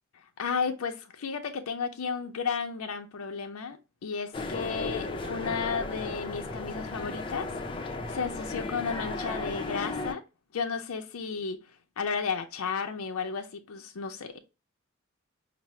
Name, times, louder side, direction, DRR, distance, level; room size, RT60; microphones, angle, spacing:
voice 1, 0.4-7.6 8.1-10.2 10.5-14.4, left 5 dB, 85° left, 0.5 m, -33 dB
sound 1, 4.3-10.1, left 3 dB, 25° left, 0.5 m, -35 dB
5.6 x 2.0 x 3.0 m
head